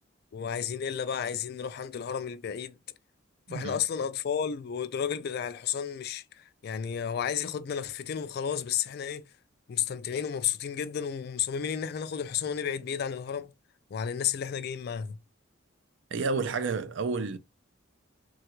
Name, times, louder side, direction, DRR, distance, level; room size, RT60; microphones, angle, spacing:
voice 1, 0.3-2.8 3.5-9.2 9.7-13.5 13.9-15.2, left 8 dB, 50° left, 0.3 m, -32 dB
voice 2, 3.5-3.8 16.1-17.4, right 4 dB, 65° right, 0.5 m, -30 dB
3.2 x 2.4 x 2.9 m
head